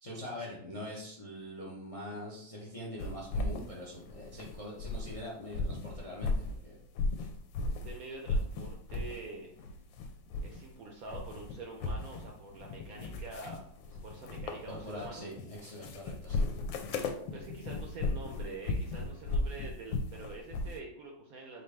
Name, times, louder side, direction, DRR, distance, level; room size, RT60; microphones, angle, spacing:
voice 1, 0.0-6.8 14.7-16.4, left 1 dB, 60° left, -4 dB, 0.3 m, -43 dB
sound 1, 3.0-5.2 5.5-7.9 8.3-9.2 9.6-10.7 11.0-20.8, left 2 dB, 80° left, 1.3 m, -36 dB
voice 2, 7.8-9.5 10.4-13.7 14.0-15.3 17.3-21.6, right 3 dB, 70° right, 1 dB, 0.9 m, -46 dB
4.3 x 2.7 x 3.3 m, 0.65 s
omnidirectional pair, 2.1 m